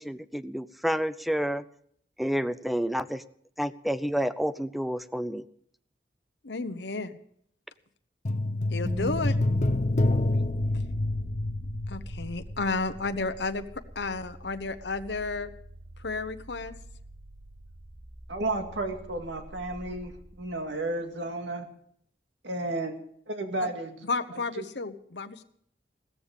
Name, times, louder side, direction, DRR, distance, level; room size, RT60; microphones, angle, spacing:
voice 1, 0.0-1.6 2.2-3.2 3.6-5.4 10.1-10.4, equal, ahead, 14 dB, 0.5 m, -30 dB
voice 2, 6.4-7.2 8.7-9.4 11.9-13.7 13.9-15.5 16.0-16.7 24.1-25.4, left 3 dB, 70° left, 9 dB, 1.1 m, -32 dB
sound 1, 8.3-12.7 13.0-13.1, left 2 dB, 45° left, 0.7 m, -27 dB
sound 2, 8.8-20.9, right 1 dB, 30° right, 1.8 m, -44 dB
voice 3, 18.3-21.7 22.4-22.9 23.3-24.1 24.6-24.7, right 2 dB, 90° right, 4 dB, 2.2 m, -32 dB
16.0 x 14.0 x 5.2 m, 0.67 s
head